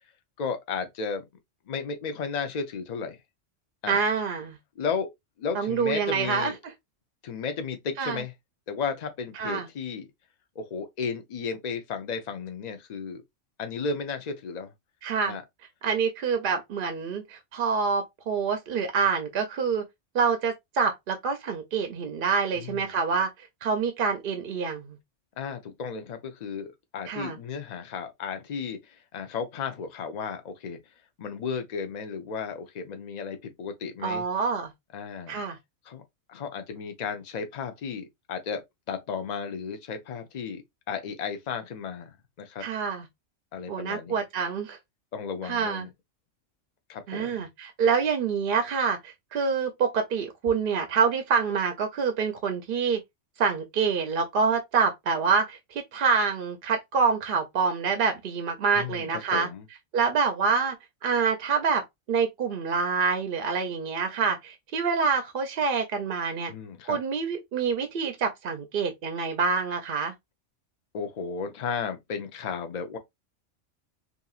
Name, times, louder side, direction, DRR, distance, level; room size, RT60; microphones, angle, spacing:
voice 1, 0.4-1.2 1.7-3.2 3.8-4.0 4.8-5.1 5.4-6.6 7.2-8.3 8.7-10.1 10.6-13.2 13.6-14.7 15.3-15.4 22.5-22.9 25.4-30.8 31.2-34.2 34.9-35.4 35.9-36.0 36.3-40.6 40.9-42.7 43.5-44.2 45.1-45.9 46.9-47.5 58.8-59.7 66.5-67.0 70.9-73.0, left 5 dB, 45° left, 0.6 m, -34 dB
voice 2, 3.9-4.6 5.5-6.5 8.0-8.2 9.4-9.7 15.0-15.4 15.8-19.8 20.1-23.3 23.6-25.0 27.1-27.4 34.0-34.7 35.3-35.6 42.6-43.0 43.7-44.8 45.4-45.9 47.1-53.0 53.4-59.5 59.9-60.7 61.0-61.8 62.1-66.5 66.9-70.1, right 5 dB, 60° right, 0.6 m, -26 dB
2.8 x 2.5 x 2.3 m
omnidirectional pair, 1.3 m